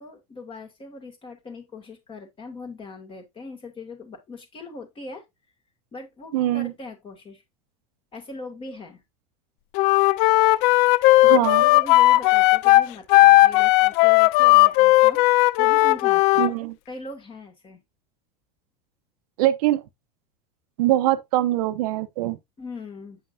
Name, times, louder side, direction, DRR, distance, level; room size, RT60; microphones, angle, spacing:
voice 1, 0.0-5.2 5.9-7.4 8.1-9.0 11.2-15.2 15.6-16.5 16.9-17.8 22.6-23.2, left 3 dB, 25° left, 2.4 m, -40 dB
voice 2, 6.3-6.7 11.2-11.6 16.4-16.7 19.4-19.8 20.8-22.4, right 14 dB, 75° right, 0.8 m, -22 dB
Wind instrument woodwind instrument, 9.7-16.5, left 19 dB, 60° left, 0.4 m, -16 dB
8.1 x 5.6 x 2.6 m
supercardioid pair, 105°, 20 cm